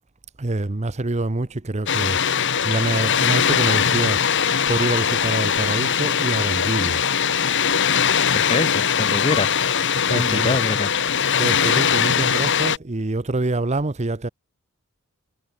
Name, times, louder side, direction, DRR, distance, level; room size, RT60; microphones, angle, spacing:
voice 1, 0.4-2.2 2.6-4.2 4.7-7.0 10.1-10.6 11.4-14.3, right 2 dB, 30° right, 0.8 m, -25 dB
Water, 1.9-12.8, left 7 dB, 55° left, 1.6 m, -21 dB
voice 2, 8.3-9.6 10.1-10.9, left 3 dB, 25° left, 0.6 m, -25 dB
head